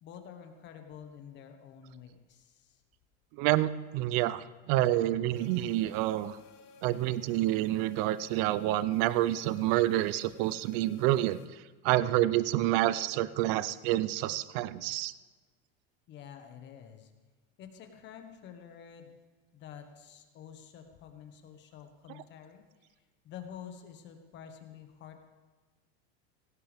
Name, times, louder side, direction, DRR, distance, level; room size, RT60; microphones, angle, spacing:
voice 1, 0.0-2.8 16.1-17.1 17.6-19.1 19.5-22.6 23.2-25.3, left 8 dB, 35° left, 6 dB, 1.4 m, -49 dB
voice 2, 3.4-6.4 6.8-11.4 11.8-15.1, right 15 dB, 45° right, 16 dB, 0.6 m, -28 dB
sound 1, 5.3-11.5, left 4 dB, 70° left, 2.4 m, -56 dB
18.0 x 16.5 x 3.5 m, 1.3 s
supercardioid pair, 160°, 33 cm